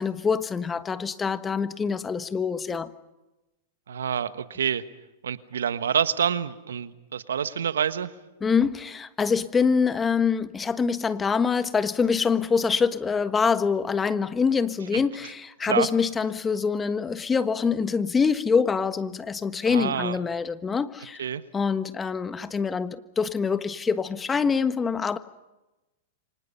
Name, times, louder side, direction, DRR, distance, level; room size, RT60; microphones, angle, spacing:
voice 1, 0.0-2.9 8.4-21.2 21.5-25.2, left 5 dB, 15° left, 12 dB, 1.4 m, -25 dB
voice 2, 3.9-4.8 5.2-8.1 14.9-15.0 15.6-15.9 19.6-20.2 21.2-21.4, right 8 dB, 80° right, 13 dB, 1.3 m, -27 dB
29.0 x 25.0 x 5.7 m, 1.0 s
hypercardioid pair, 105°, 0 cm